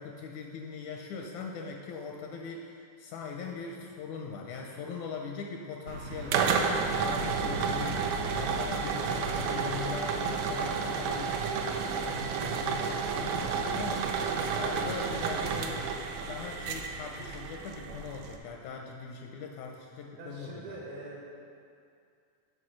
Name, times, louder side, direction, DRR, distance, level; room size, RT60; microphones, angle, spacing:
voice 1, 0.0-2.7 3.0-14.3 14.5-15.9 16.3-20.8, left 5 dB, 80° left, 1 dB, 1.8 m, -40 dB
sound 1, 5.9-18.4, right 5 dB, 85° right, 1.6 m, -31 dB
voice 2, 20.2-21.2, right 2 dB, 70° right, -3 dB, 2.4 m, -44 dB
8.5 x 5.2 x 6.3 m, 2.4 s
omnidirectional pair, 3.8 m